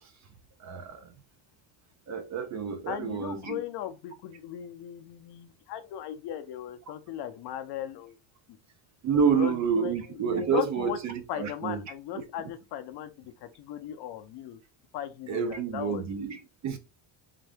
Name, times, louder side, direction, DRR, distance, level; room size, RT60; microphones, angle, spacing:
voice 1, 0.6-1.1 2.1-3.6 9.0-11.8 12.1-12.2 15.3-16.8, right 6 dB, 40° right, 0.4 m, -29 dB
voice 2, 2.9-8.2 9.3-11.0 11.3-14.6 14.9-16.0, left 10 dB, 55° left, 0.6 m, -37 dB
3.7 x 2.6 x 3.3 m
cardioid pair, 165°, 48 cm